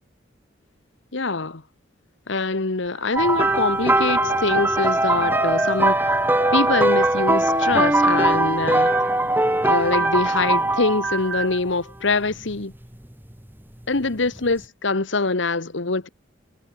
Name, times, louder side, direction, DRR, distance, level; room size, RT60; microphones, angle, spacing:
voice 1, 1.1-1.6 2.3-6.2 6.5-8.9 9.6-12.7 13.9-16.1, left 3 dB, 75° left, 1.3 m, -24 dB
sound 1, 2.9-6.1 6.4-10.5 10.8-11.6, right 4 dB, 65° right, 4.5 m, -32 dB
sound 2, 3.2-11.4 12.3-12.5 14.4-14.5, right 2 dB, 10° right, 1.7 m, -20 dB
head